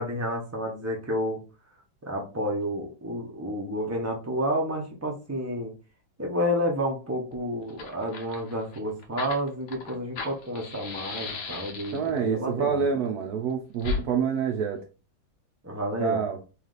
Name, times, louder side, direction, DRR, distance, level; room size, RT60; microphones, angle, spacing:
voice 1, 0.0-1.4 2.0-5.7 6.2-12.9 15.6-16.2, equal, 25° right, 0 dB, 0.3 m, -30 dB
Fire, 7.3-7.4 7.6-12.2 13.8-14.0, left 4 dB, 60° left, 1.0 m, -35 dB
voice 2, 11.9-14.8 16.0-16.4, right 6 dB, 70° right, 4 dB, 0.9 m, -27 dB
3.2 x 3.2 x 3.9 m, 0.32 s
omnidirectional pair, 2.1 m